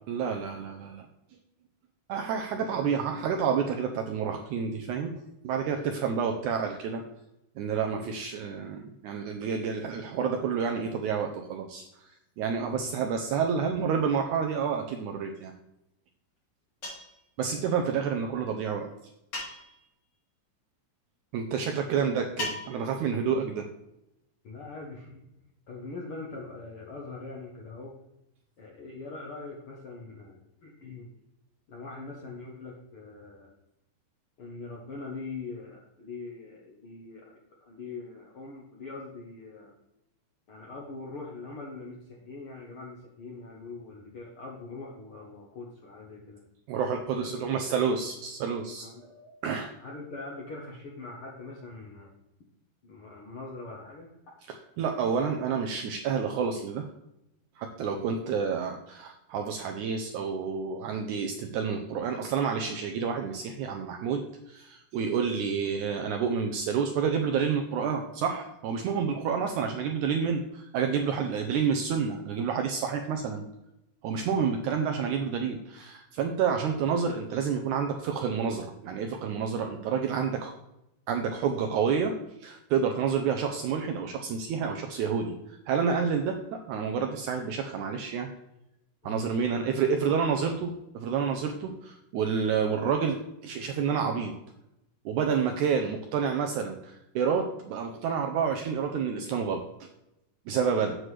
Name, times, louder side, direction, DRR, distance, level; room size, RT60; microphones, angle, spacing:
voice 1, 0.1-1.1 2.1-5.2 5.4-7.0 7.6-12.1 12.4-15.5 17.4-18.9 21.3-23.7 46.7-49.7 54.8-56.9 57.6-64.2 64.5-73.4 74.0-80.5 81.1-88.3 89.0-94.3 95.0-99.9 100.5-101.0, right 6 dB, 80° right, 4 dB, 1.8 m, -29 dB
voice 2, 2.6-3.3 7.9-8.2 12.6-12.9 24.4-25.2 25.7-27.9 28.6-31.1 31.7-33.5 34.4-37.3 37.6-39.7 40.5-46.4 47.2-47.6 48.8-49.1 49.8-52.1 52.8-54.1 58.0-58.2 69.2-69.3 76.5-76.6 89.0-89.2 93.7-93.8, left 3 dB, 70° left, -2 dB, 1.3 m, -42 dB
sound 1, 16.8-17.2 19.3-19.9 22.4-23.0, left 2 dB, 45° left, 4.3 m, -37 dB
7.8 x 7.5 x 3.2 m, 0.88 s
omnidirectional pair, 4.1 m